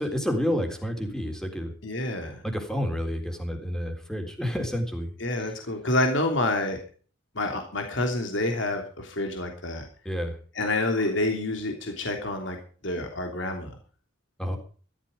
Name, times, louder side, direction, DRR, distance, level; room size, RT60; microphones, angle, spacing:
voice 1, 0.0-1.7 2.4-5.1 10.1-10.4 14.4-14.6, equal, 5° left, 4 dB, 3.7 m, -29 dB
voice 2, 1.8-2.4 5.2-6.8 7.3-9.8 10.5-12.6 12.8-13.7, left 2 dB, 70° left, 3 dB, 3.1 m, -28 dB
14.0 x 13.5 x 5.1 m, 0.40 s
head